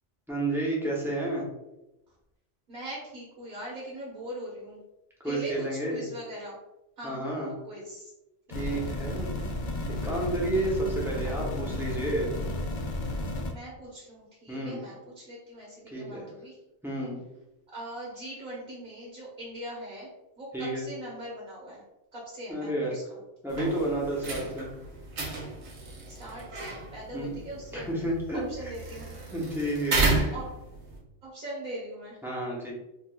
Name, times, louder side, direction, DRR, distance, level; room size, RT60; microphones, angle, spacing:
voice 1, 0.3-1.4 5.2-6.0 7.0-7.5 8.5-9.3 10.0-12.3 14.5-14.8 15.9-16.2 16.8-17.2 20.5-20.8 22.5-22.9 23.4-24.7 27.1-27.3 27.7-28.4 29.3-30.1 32.2-32.7, right 1 dB, 5° right, -5 dB, 0.7 m, -30 dB
voice 2, 2.7-4.8 5.2-6.6 7.0-8.1 8.5-8.9 11.2-11.6 13.2-16.6 17.7-20.1 20.4-21.8 22.1-23.2 26.1-28.1 28.3-29.5 30.3-30.5 31.2-32.2, right 1 dB, 55° right, -5 dB, 1.0 m, -41 dB
sound 1, 8.5-13.5, left 1 dB, 55° left, 0.6 m, -33 dB
sound 2, 23.5-31.0, right 3 dB, 80° right, 1.1 m, -33 dB
4.3 x 2.3 x 2.2 m, 0.94 s
omnidirectional pair, 1.1 m